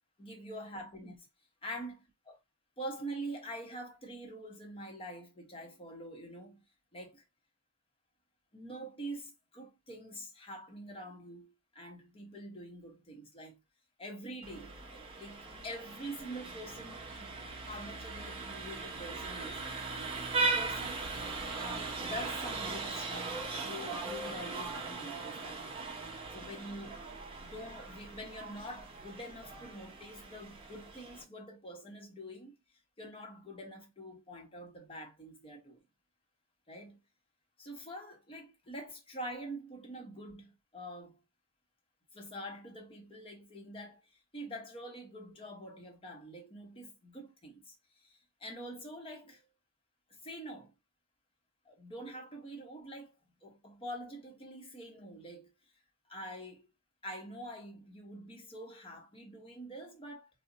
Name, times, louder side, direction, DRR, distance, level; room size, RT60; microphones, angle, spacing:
voice 1, 0.2-1.3 1.6-2.4 2.8-6.6 6.9-7.2 8.5-13.6 14.0-19.6 20.4-21.0 21.9-23.3 23.6-25.6 25.9-26.0 26.3-27.0 27.4-32.5 33.0-35.8 36.7-37.0 37.6-41.2 42.1-49.4 50.2-50.7 51.6-53.1 53.4-55.5 56.1-56.7 57.0-60.3, equal, 25° left, 0.8 m, -45 dB
Vehicle horn car horn honking, 14.4-31.2, right 3 dB, 25° right, 0.6 m, -39 dB
2.5 x 2.1 x 3.7 m
head